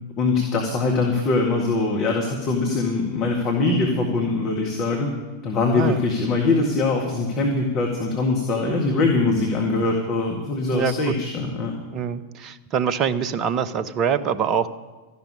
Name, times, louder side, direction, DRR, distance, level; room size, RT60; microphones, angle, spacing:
voice 1, 0.2-5.1 5.4-11.7, left 3 dB, 35° left, 0 dB, 1.9 m, -22 dB
voice 2, 10.7-11.1 11.9-14.7, right 7 dB, 35° right, 13 dB, 0.7 m, -24 dB
13.0 x 6.8 x 9.8 m, 1.2 s
figure-of-eight pair, 90°, 0 cm